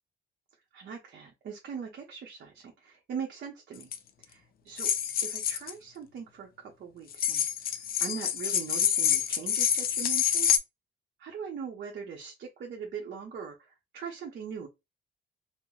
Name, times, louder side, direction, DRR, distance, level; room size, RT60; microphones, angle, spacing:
voice 1, 0.7-3.9 4.3-4.9 5.2-10.5 11.2-14.7, right 6 dB, 60° right, 0.7 m, -41 dB
sound 1, 3.8-4.0 4.8-5.7 7.1-10.6, left 9 dB, 50° left, 0.4 m, -27 dB
3.8 x 2.0 x 2.3 m
cardioid pair, 90°, 20 cm